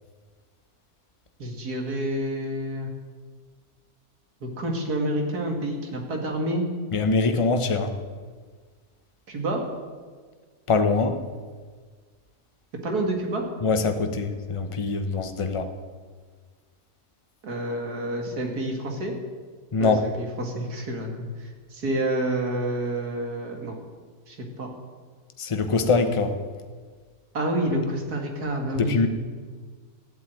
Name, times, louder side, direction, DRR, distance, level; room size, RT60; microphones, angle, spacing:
voice 1, 1.4-2.9 4.4-6.6 9.3-9.6 12.8-13.4 17.4-19.1 19.8-23.7 24.3-24.7 27.3-29.1, right 1 dB, 80° right, 2 dB, 2.8 m, -28 dB
voice 2, 6.9-7.9 10.7-11.2 13.6-15.7 19.7-20.0 25.4-26.3 28.8-29.1, left 4 dB, 25° left, 7 dB, 0.9 m, -23 dB
13.5 x 8.1 x 9.2 m, 1.5 s
omnidirectional pair, 1.6 m